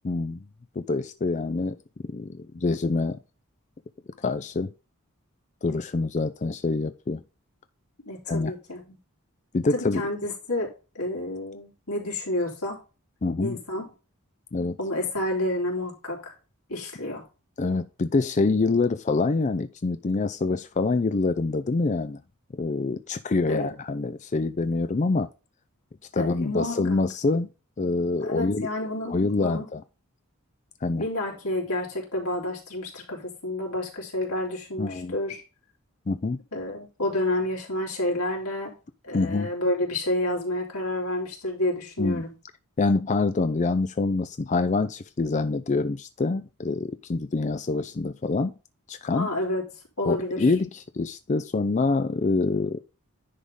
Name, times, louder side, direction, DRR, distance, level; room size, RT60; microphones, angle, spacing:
voice 1, 0.0-0.4 0.8-3.2 4.2-4.7 5.6-7.2 8.3-8.5 9.5-10.0 13.2-13.6 14.5-14.8 17.6-22.2 22.5-25.3 26.1-27.5 27.8-28.7 29.1-29.8 30.8-31.0 34.8-35.1 36.1-36.4 39.1-39.5 42.0-42.2 42.8-48.5 48.9-49.3 50.0-52.8, left 3 dB, 35° left, 0.4 m, -26 dB
voice 2, 8.1-9.0 9.7-10.7 11.0-12.8 13.4-13.9 14.8-16.3 16.7-17.2 23.5-23.8 26.2-27.0 28.2-29.7 31.0-35.4 36.5-38.7 39.0-42.3 49.1-49.6 50.0-50.5, left 1 dB, 90° left, 3.4 m, -29 dB
10.0 x 3.7 x 5.2 m
head